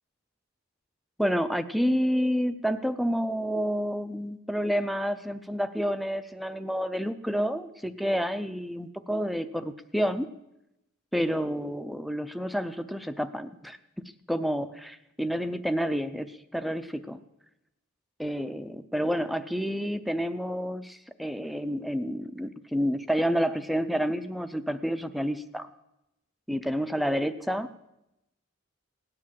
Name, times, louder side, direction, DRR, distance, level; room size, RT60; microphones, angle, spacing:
voice 1, 1.2-10.3 11.1-13.8 14.3-17.2 18.2-25.7 26.5-27.7, equal, ahead, 11 dB, 0.5 m, -29 dB
17.0 x 9.9 x 7.5 m, 0.87 s
head